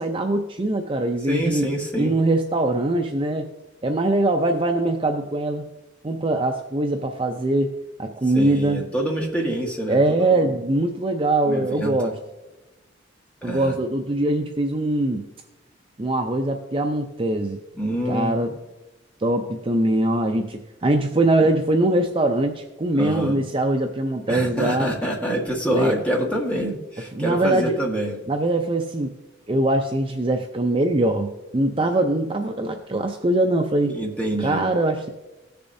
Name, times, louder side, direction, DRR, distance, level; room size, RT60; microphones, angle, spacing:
voice 1, 0.0-1.7 2.0-3.5 3.8-5.6 6.0-7.7 8.0-8.8 9.9-12.1 13.4-15.2 16.0-17.6 18.1-18.5 19.2-24.9 25.7-26.0 27.1-27.8 28.3-29.1 29.5-34.0 34.4-35.1, right 2 dB, 30° right, 4 dB, 0.5 m, -22 dB
voice 2, 1.3-2.1 8.3-10.5 11.4-12.1 13.4-13.8 17.8-18.5 23.0-23.4 24.3-28.2 33.9-34.7, right 1 dB, 5° left, -1 dB, 1.5 m, -26 dB
17.0 x 6.9 x 2.7 m, 1.0 s
head